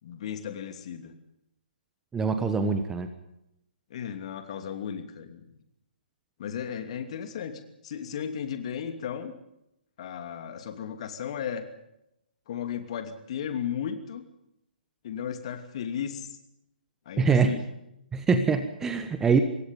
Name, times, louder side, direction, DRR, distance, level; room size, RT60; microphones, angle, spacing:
voice 1, 0.0-1.1 3.9-5.4 6.4-9.3 10.0-11.7 12.5-14.2 15.0-16.4 17.1-17.6, left 8 dB, 40° left, 8 dB, 2.8 m, -35 dB
voice 2, 2.1-3.1 17.2-17.6 18.1-19.4, right 5 dB, 10° right, 9 dB, 1.3 m, -24 dB
25.5 x 21.5 x 5.5 m, 0.82 s
figure-of-eight pair, 130°, 5 cm